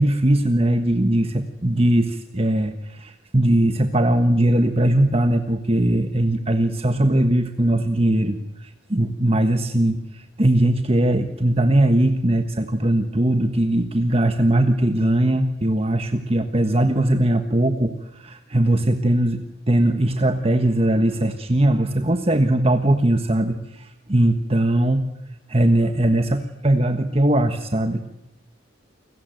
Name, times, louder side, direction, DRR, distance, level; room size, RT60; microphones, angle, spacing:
voice 1, 0.0-25.1 25.5-28.1, right 1 dB, 30° right, 7 dB, 1.4 m, -20 dB
29.5 x 22.0 x 9.3 m, 0.84 s
head